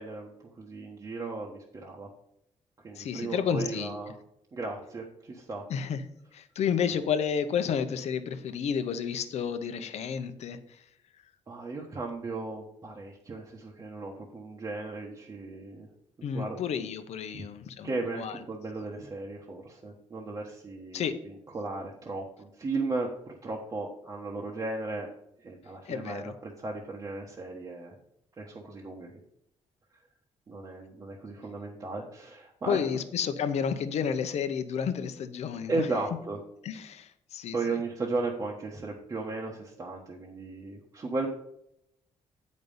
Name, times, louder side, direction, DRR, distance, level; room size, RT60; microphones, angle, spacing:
voice 1, 0.0-2.1 2.8-4.2 4.5-5.6 11.5-15.9 16.3-16.6 17.3-17.4 17.8-25.1 25.4-28.0 28.4-29.2 30.5-32.8 35.7-36.4 37.5-41.3, right 3 dB, 30° right, -2 dB, 1.1 m, -36 dB
voice 2, 2.9-4.0 5.7-6.0 6.3-10.8 16.2-18.4 20.9-21.1 25.8-26.4 32.7-35.9 36.6-37.8, left 7 dB, 70° left, 10 dB, 0.8 m, -31 dB
8.0 x 5.3 x 5.4 m, 0.77 s
cardioid pair, 125°, 12 cm